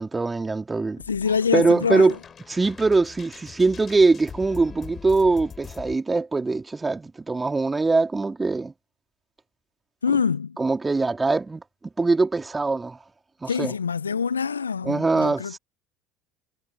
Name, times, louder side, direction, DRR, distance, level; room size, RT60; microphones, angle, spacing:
voice 1, 0.0-1.0 1.5-2.1 2.5-8.7 10.6-13.0 13.4-13.7 14.8-15.6, right 3 dB, 15° right, 2.9 m, -22 dB
sound 1, 1.0-5.9, left 6 dB, 30° left, 5.6 m, -43 dB
voice 2, 1.1-2.2 10.0-10.6 13.5-15.6, left 6 dB, 85° left, 0.9 m, -25 dB
figure-of-eight pair, 65°, 0 cm